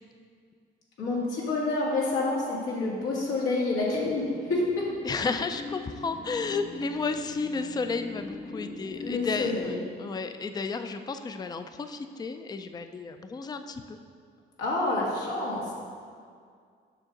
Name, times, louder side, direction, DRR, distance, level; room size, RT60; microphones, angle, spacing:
voice 1, 1.0-4.9 9.0-9.7 14.6-15.7, left 2 dB, 90° left, -5 dB, 1.8 m, -28 dB
sound 1, 4.1-9.6, left 3 dB, 35° left, 0.8 m, -41 dB
voice 2, 5.0-14.0, left 4 dB, 20° left, 9 dB, 0.4 m, -33 dB
7.4 x 5.5 x 3.9 m, 2.1 s
cardioid pair, 90°, 20 cm